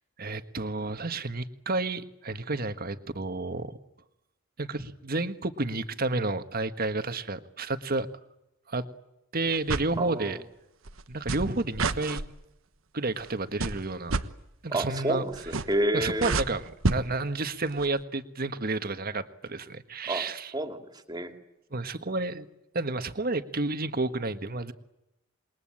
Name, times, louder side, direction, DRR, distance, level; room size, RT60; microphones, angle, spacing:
voice 1, 0.2-3.8 4.6-8.1 8.7-8.8 9.3-10.4 11.1-12.2 12.9-14.1 14.6-15.2 15.9-20.5 21.7-22.5 22.7-24.7, right 2 dB, 45° right, 10 dB, 1.5 m, -31 dB
sound 1, 9.5-9.9 10.9-12.3 13.2-13.3 13.6-14.2 15.3-15.8 16.1-17.0 17.7-17.9, right 3 dB, 85° right, 1.3 m, -29 dB
voice 2, 10.0-10.4 14.7-16.4 20.1-20.2 20.5-21.3, right 1 dB, 20° right, 6 dB, 2.6 m, -30 dB
27.5 x 22.0 x 8.8 m, 0.88 s
head